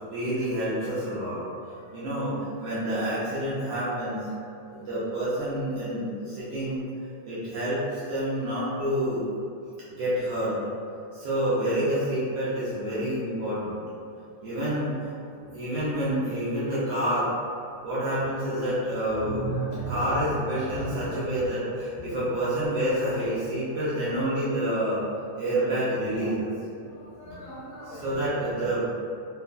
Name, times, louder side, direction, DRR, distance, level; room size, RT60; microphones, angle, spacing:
voice 1, 0.0-1.4 1.9-4.3 4.7-6.8 7.2-9.3 10.0-10.5 11.1-13.8 14.4-17.3 17.8-19.4 19.9-25.0 25.4-26.5 27.8-28.8, right 1 dB, 80° right, -10 dB, 1.4 m, -28 dB
voice 2, 19.2-20.2 20.7-20.9 27.0-28.1, right 2 dB, 90° left, -11 dB, 1.0 m, -35 dB
5.4 x 2.0 x 2.2 m, 2.6 s
omnidirectional pair, 3.4 m